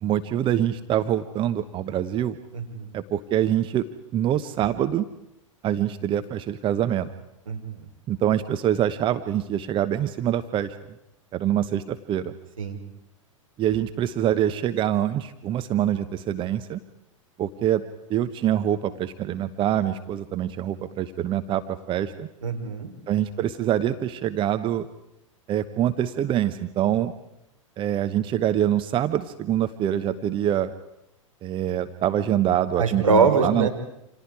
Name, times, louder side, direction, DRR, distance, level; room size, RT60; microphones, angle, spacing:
voice 1, 0.0-2.4 2.9-3.9 4.1-5.1 5.6-7.1 8.1-10.7 11.3-12.3 13.6-16.8 17.4-17.8 18.1-22.3 23.1-24.9 25.5-27.1 27.8-30.7 31.4-33.7, right 11 dB, 30° right, 11 dB, 1.1 m, -25 dB
voice 2, 2.5-2.9 7.5-7.8 12.6-12.8 22.4-22.9 32.8-33.7, right 4 dB, 80° right, 3 dB, 4.1 m, -23 dB
29.0 x 27.5 x 4.9 m, 0.84 s
figure-of-eight pair, 95°, 17 cm